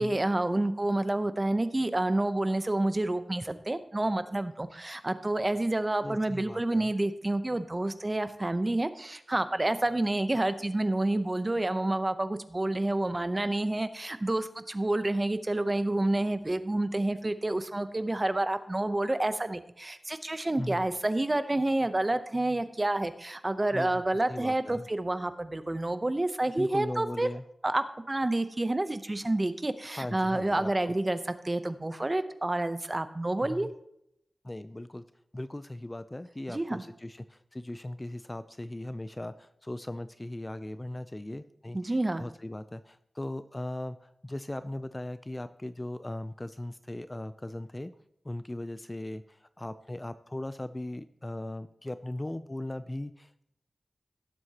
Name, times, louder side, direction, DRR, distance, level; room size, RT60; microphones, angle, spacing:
voice 1, 0.0-27.3 27.6-31.2 31.4-33.7 36.5-36.8 41.7-42.2, right 2 dB, 25° right, 11 dB, 0.7 m, -29 dB
voice 2, 6.0-6.9 20.6-20.9 23.7-24.9 26.6-27.4 29.8-30.9 33.4-33.7 34.4-35.0 35.3-47.9 48.2-53.4, left 1 dB, 20° left, 12 dB, 0.4 m, -38 dB
17.5 x 7.8 x 2.9 m, 0.75 s
wide cardioid pair, 105°, 0 cm